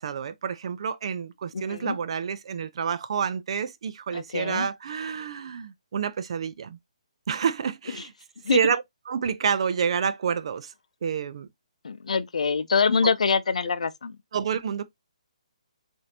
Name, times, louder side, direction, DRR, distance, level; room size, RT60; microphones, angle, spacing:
voice 1, 0.0-6.8 7.3-8.1 8.5-10.7 11.0-11.5 13.0-13.1 14.3-14.8, right 7 dB, 50° right, 0.5 m, -28 dB
voice 2, 1.5-2.0 4.1-4.7 8.4-8.6 11.8-14.2, left 5 dB, 70° left, 0.6 m, -25 dB
5.7 x 2.7 x 2.8 m
hypercardioid pair, 150°, 4 cm